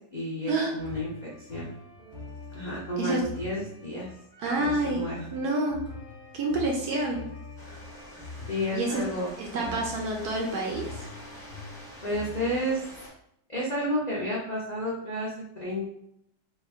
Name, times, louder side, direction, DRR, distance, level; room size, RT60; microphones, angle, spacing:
voice 1, 0.1-1.7 2.5-4.1 4.5-5.3 8.5-9.3 9.6-9.8 12.0-12.8 13.5-15.9, equal, 55° left, -6 dB, 0.4 m, -31 dB
sound 1, 0.8-12.6, left 3 dB, 35° left, 0.8 m, -44 dB
voice 2, 4.4-5.0 5.3-5.8 6.3-7.2 8.7-9.1 9.4-11.0, right 2 dB, 70° right, 0 dB, 1.0 m, -28 dB
sound 2, 7.6-13.1, equal, ahead, 0.7 m, -47 dB
3.4 x 2.2 x 3.5 m, 0.75 s
omnidirectional pair, 2.0 m